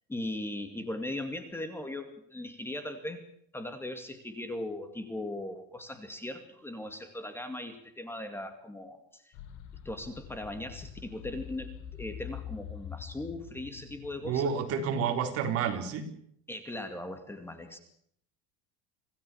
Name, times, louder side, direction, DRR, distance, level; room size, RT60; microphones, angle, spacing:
voice 1, 0.1-3.2 3.5-9.3 9.8-14.5 16.5-17.8, left 1 dB, 5° left, 8 dB, 2.4 m, -39 dB
sound 1, 9.3-14.8, left 9 dB, 55° left, 4.7 m, -45 dB
voice 2, 14.2-16.1, right 6 dB, 45° right, 6 dB, 4.2 m, -29 dB
27.0 x 17.5 x 7.1 m, 0.69 s
cardioid pair, 155°, 33 cm